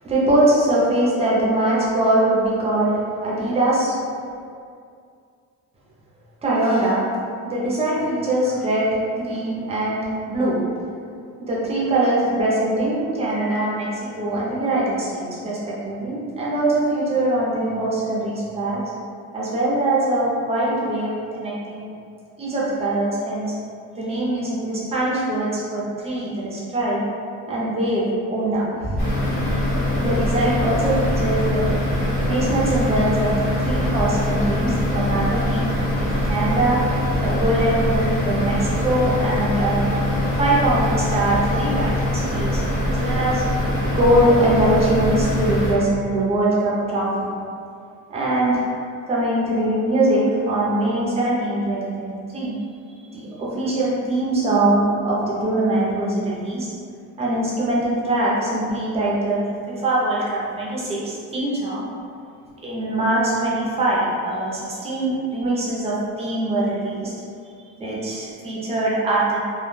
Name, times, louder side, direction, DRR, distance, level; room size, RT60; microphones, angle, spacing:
voice 1, 0.0-4.0 6.4-7.0 7.5-10.6 11.4-18.8 19.3-21.9 22.4-23.5 24.0-27.1 27.5-29.0 30.0-31.7 32.3-36.8 37.2-39.9 40.4-43.4 43.9-47.3 48.1-48.7 49.1-52.5 53.1-56.7 57.2-61.9 62.6-67.1 67.8-69.4, right 1 dB, 20° right, -6 dB, 0.5 m, -22 dB
sound 1, 29.0-45.7, left 1 dB, 25° left, 0.8 m, -23 dB
2.2 x 2.1 x 3.1 m, 2.4 s
cardioid pair, 170°, 31 cm